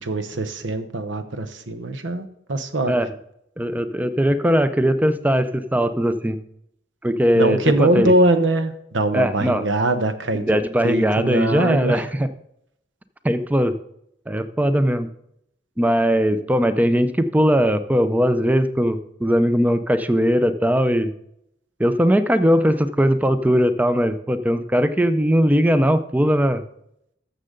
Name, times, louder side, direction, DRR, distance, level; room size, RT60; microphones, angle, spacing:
voice 1, 0.0-3.0 7.3-10.6 10.8-12.0, right 1 dB, 85° right, 10 dB, 0.9 m, -22 dB
voice 2, 3.6-6.4 7.0-8.1 9.1-9.6 10.5-12.3 13.2-13.8 14.3-15.1 15.8-21.1 21.8-26.6, equal, 10° right, 12 dB, 0.5 m, -19 dB
13.0 x 6.7 x 3.8 m, 0.76 s
head